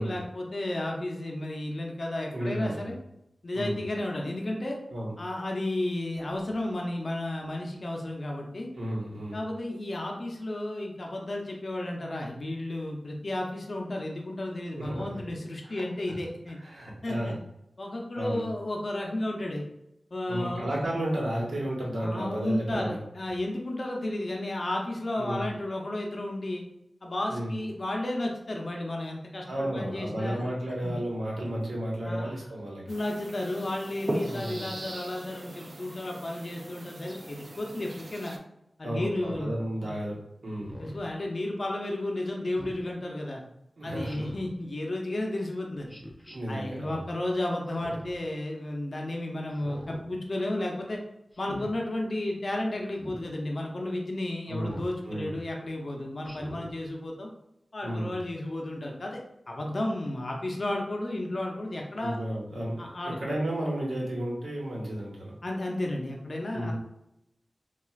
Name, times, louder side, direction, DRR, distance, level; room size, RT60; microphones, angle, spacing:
voice 1, 0.0-3.0 3.4-4.8 5.2-8.7 9.3-16.6 17.0-17.3 17.8-19.7 20.1-20.7 22.0-26.6 27.0-30.4 30.8-30.9 32.0-32.3 32.9-38.4 38.8-39.5 39.8-39.9 40.8-43.4 43.8-45.9 46.5-51.0 51.4-57.3 57.7-59.2 59.5-62.2 62.8-63.2 65.4-66.7, left 1 dB, 50° left, 0 dB, 0.5 m, -33 dB
voice 2, 2.3-2.9 3.5-3.8 4.9-5.1 8.7-9.4 14.7-15.2 15.6-15.8 16.5-17.4 18.1-18.4 20.3-23.0 25.2-25.5 27.3-27.5 29.5-32.8 34.2-34.7 38.8-40.8 43.8-44.3 46.3-47.0 54.5-54.8 55.0-55.3 57.8-58.1 62.0-65.4 66.5-66.7, right 1 dB, 80° right, -3 dB, 1.0 m, -33 dB
sound 1, 32.9-38.4, right 1 dB, 45° right, 0.4 m, -39 dB
Speech synthesizer, 39.1-39.5 40.6-41.1 42.5-42.8 44.0-44.5 45.9-46.4 47.7-48.2 49.5-50.0 51.3-51.7 52.9-53.2 54.6-54.9 56.2-56.7, equal, 10° left, 0.5 m, -43 dB
4.2 x 2.3 x 2.3 m, 0.82 s
wide cardioid pair, 90°, 0 cm